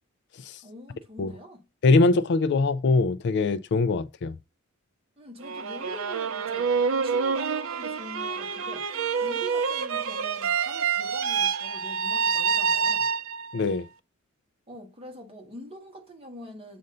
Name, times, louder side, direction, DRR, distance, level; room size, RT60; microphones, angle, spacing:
voice 1, 0.6-1.6 5.2-8.9 9.2-13.1 14.7-16.8, equal, 25° right, 1.5 m, -44 dB
voice 2, 1.8-4.3 13.5-13.9, left 3 dB, 55° left, 0.4 m, -22 dB
sound 1, 5.4-13.6, right 6 dB, 65° right, 0.5 m, -27 dB
7.6 x 2.6 x 5.3 m
head